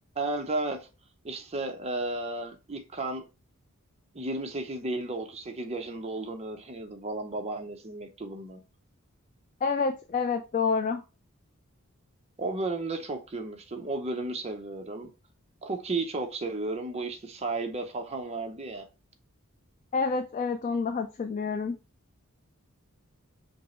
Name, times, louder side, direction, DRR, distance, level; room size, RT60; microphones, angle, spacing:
voice 1, 0.2-0.9 1.2-3.3 4.1-8.6 12.4-15.1 15.6-18.9, right 2 dB, 30° right, 0.6 m, -33 dB
voice 2, 9.6-11.0 19.9-21.7, left 5 dB, 35° left, 0.3 m, -28 dB
5.2 x 2.0 x 4.2 m
head